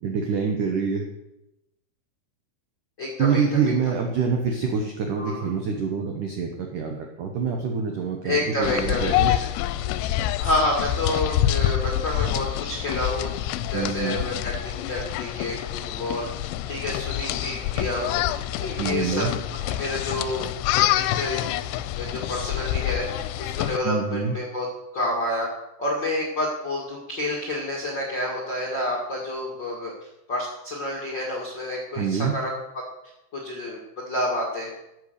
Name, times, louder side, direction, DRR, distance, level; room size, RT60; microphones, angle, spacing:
voice 1, 0.0-1.1 3.2-9.3 13.7-14.2 18.8-19.3 23.8-24.4 32.0-32.3, right 6 dB, 85° right, 3 dB, 1.8 m, -26 dB
voice 2, 3.0-3.7 5.2-5.5 8.2-9.3 9.6-9.7 10.4-13.4 13.7-18.2 18.6-19.3 19.7-20.5 20.7-21.4 21.9-24.6 24.9-25.5 25.8-29.9 30.3-32.8 33.3-33.8 34.1-34.7, left 1 dB, 55° left, -3 dB, 1.2 m, -29 dB
sound 1, 8.6-23.8, left 13 dB, 85° left, 2.9 m, -27 dB
13.5 x 8.3 x 6.7 m, 0.91 s
omnidirectional pair, 5.6 m